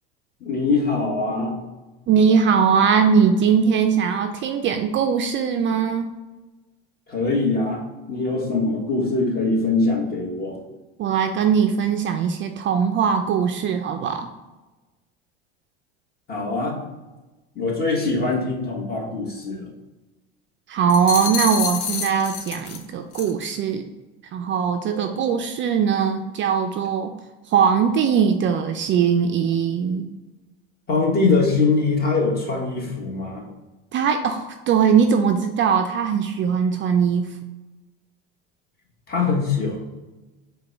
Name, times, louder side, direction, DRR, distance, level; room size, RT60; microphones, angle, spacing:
voice 1, 0.4-1.6 7.1-7.8 8.1-10.6 16.3-16.8 17.5-19.7 24.9-25.3 30.9-33.5 39.1-39.8, left 3 dB, 30° left, -1 dB, 1.3 m, -23 dB
voice 2, 2.1-6.1 11.0-14.3 20.7-23.8 24.3-27.1 27.5-30.0 33.9-37.3, right 7 dB, 40° right, 6 dB, 0.4 m, -20 dB
sound 1, 20.9-22.8 23.1-23.4, left 7 dB, 60° left, 0.7 m, -28 dB
4.8 x 2.3 x 4.5 m, 1.1 s
supercardioid pair, 95°, 31 cm